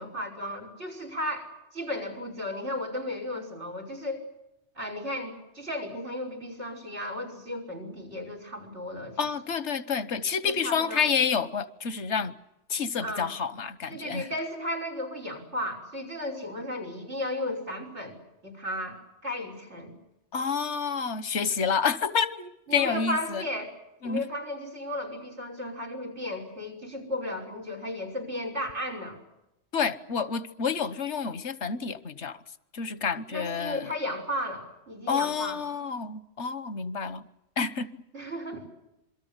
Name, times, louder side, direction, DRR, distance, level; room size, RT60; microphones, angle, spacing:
voice 1, 0.0-4.2 4.8-9.2 10.4-11.1 13.0-13.3 13.9-18.2 18.4-20.0 22.7-23.7 24.0-29.2 33.3-35.6 38.1-38.7, left 1 dB, 90° right, 6.1 m, -34 dB
voice 2, 9.2-12.3 12.7-14.3 20.3-23.4 24.0-24.3 29.7-32.4 32.7-33.9 35.1-37.3 37.6-38.0, left 6 dB, 85° left, 1.5 m, -29 dB
27.5 x 23.0 x 8.1 m
omnidirectional pair, 1.1 m